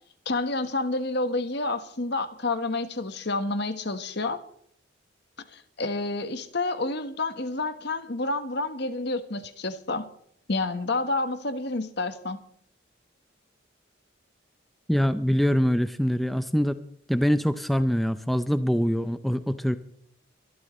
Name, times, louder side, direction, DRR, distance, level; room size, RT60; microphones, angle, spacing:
voice 1, 0.2-4.4 5.5-10.1 10.5-12.4, left 2 dB, 55° left, 10 dB, 1.3 m, -29 dB
voice 2, 14.9-16.8 17.1-19.8, equal, ahead, 10 dB, 0.5 m, -24 dB
23.5 x 13.0 x 3.2 m, 0.67 s
head